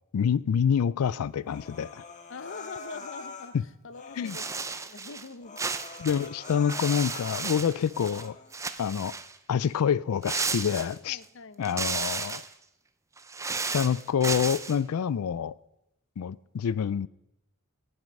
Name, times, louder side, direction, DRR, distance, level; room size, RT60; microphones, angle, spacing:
voice 1, 0.1-2.0 4.2-4.4 6.0-8.4 8.8-9.1 9.5-11.2 11.6-12.4 13.7-15.5 16.2-17.1, left 7 dB, 90° left, 0.4 m, -27 dB
Human voice, 1.5-3.5 3.9-4.6 5.0-5.1 5.4-7.5 7.9-8.5, left 4 dB, 35° left, 1.5 m, -44 dB
voice 2, 2.3-5.6 11.1-11.7, left 4 dB, 60° left, 0.7 m, -44 dB
sound 1, 4.3-5.3 5.6-8.3 8.5-9.4 10.2-11.2 11.6-12.5 13.2-14.8, right 4 dB, 15° right, 0.5 m, -33 dB
18.5 x 7.9 x 5.3 m
head